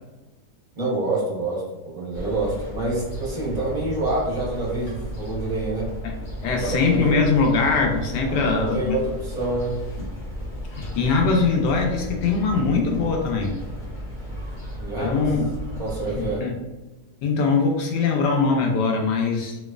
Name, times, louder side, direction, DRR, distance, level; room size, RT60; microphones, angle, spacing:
voice 1, 0.8-5.9 6.5-7.1 8.3-9.8 14.8-15.3 15.8-16.5, right 2 dB, 30° right, -5 dB, 0.9 m, -27 dB
sound 1, 2.1-16.4, equal, 40° left, 0.8 m, -34 dB
voice 2, 6.4-9.0 10.7-13.5 15.0-15.4 16.2-16.6 17.2-19.6, left 4 dB, 75° left, 2 dB, 1.1 m, -22 dB
3.1 x 2.9 x 2.3 m, 1.1 s
omnidirectional pair, 1.9 m